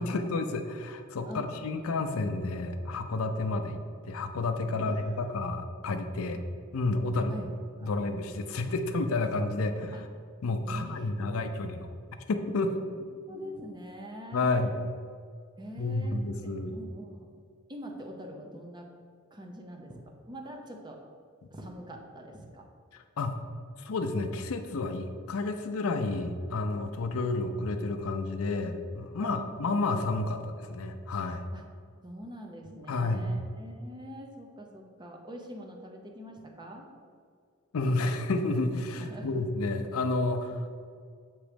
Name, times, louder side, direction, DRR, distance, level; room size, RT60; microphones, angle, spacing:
voice 1, 0.0-6.4 6.7-7.3 7.8-10.0 10.4-11.9 12.3-12.8 14.3-14.7 15.8-16.8 23.2-23.4 23.8-31.4 32.9-33.3 37.7-40.8, left 2 dB, 85° left, 7 dB, 0.5 m, -30 dB
voice 2, 1.2-1.9 4.8-5.2 7.2-7.5 7.8-7.9 9.9-10.0 10.6-11.8 12.8-12.9 13.3-14.7 15.6-17.3 17.7-18.9 19.3-21.0 21.5-22.7 29.2-29.7 31.5-31.6 32.0-36.9 39.0-39.5, equal, 20° right, 2 dB, 0.7 m, -44 dB
7.2 x 3.0 x 5.0 m, 2.1 s
head